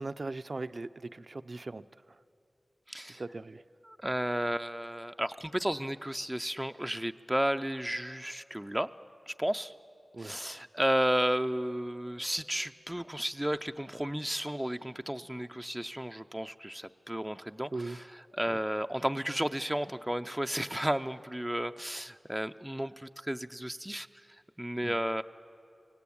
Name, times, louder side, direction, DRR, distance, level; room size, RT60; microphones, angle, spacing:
voice 1, 0.0-1.8 3.1-3.6 10.1-10.4 17.7-18.0 18.5-18.6 24.8-24.9, right 3 dB, 55° right, 13 dB, 0.5 m, -39 dB
voice 2, 2.9-3.2 3.8-8.9 9.3-9.7 10.2-24.1 24.6-25.2, equal, 10° right, 8 dB, 0.5 m, -33 dB
25.5 x 18.0 x 8.6 m, 2.6 s
wide cardioid pair, 55°, 0 cm